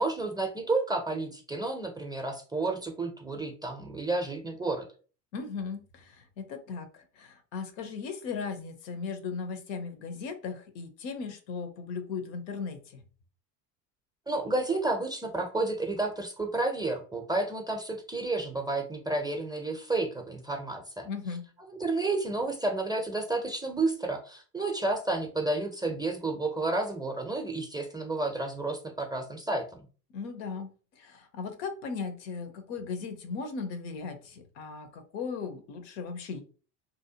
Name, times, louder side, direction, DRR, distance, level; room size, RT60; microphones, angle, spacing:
voice 1, 0.0-4.9 14.3-21.1 21.6-29.6, right 2 dB, 10° right, 3 dB, 0.4 m, -31 dB
voice 2, 5.3-13.0 21.1-21.4 30.1-30.7 31.0-36.4, left 5 dB, 90° left, 8 dB, 0.8 m, -37 dB
2.7 x 2.0 x 2.7 m, 0.37 s
supercardioid pair, 85°, 49 cm